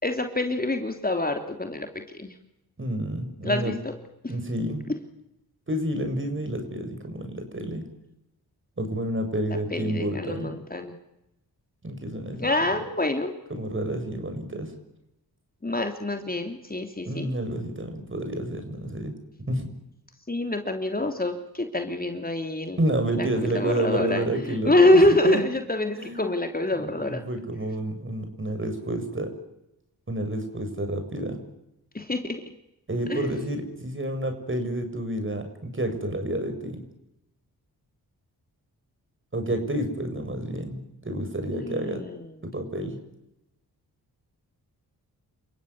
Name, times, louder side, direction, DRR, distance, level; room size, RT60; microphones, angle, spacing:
voice 1, 0.0-1.9 2.1-2.3 3.4-3.7 9.7-10.9 12.4-13.3 15.6-17.3 20.3-22.8 23.1-23.3 23.5-27.2 31.9-32.4 33.1-33.3 41.5-42.2, left 1 dB, 25° left, 5 dB, 3.2 m, -25 dB
voice 2, 2.8-3.7 4.3-4.8 5.7-7.8 8.8-10.6 11.8-12.5 13.5-14.7 17.1-19.2 19.5-19.7 22.8-25.4 26.0-26.3 26.7-29.3 30.1-31.4 32.9-36.8 39.3-42.0 42.4-43.0, right 1 dB, 30° right, 7 dB, 7.1 m, -29 dB
29.5 x 16.0 x 9.7 m, 0.86 s
cardioid pair, 60°, 38 cm